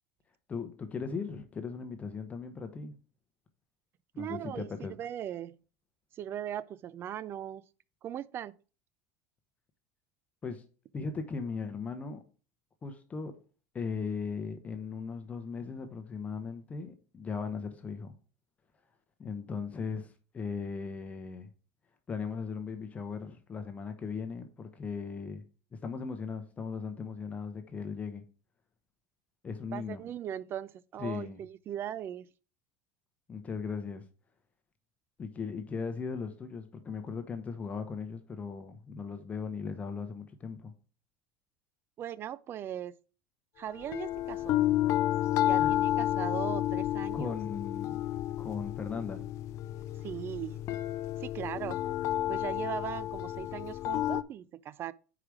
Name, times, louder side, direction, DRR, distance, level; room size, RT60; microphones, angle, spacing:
voice 1, 0.5-2.9 4.1-5.0 10.4-10.6 10.9-12.2 12.8-13.3 13.7-18.1 19.2-21.5 22.1-25.4 25.7-28.2 29.4-30.0 31.0-31.4 33.3-34.0 35.2-40.7 45.6-45.7 47.1-48.0 48.4-49.2, left 5 dB, 20° left, 0.9 m, -38 dB
voice 2, 4.2-5.6 6.1-7.7 8.0-8.5 29.7-32.3 42.0-43.0 43.6-44.6 45.4-47.4 50.0-50.6 51.2-51.9 52.3-54.9, right 10 dB, 35° right, 0.4 m, -39 dB
sound 1, 43.8-54.2, left 13 dB, 45° left, 0.4 m, -31 dB
4.9 x 4.9 x 6.1 m
supercardioid pair, 135°, 7 cm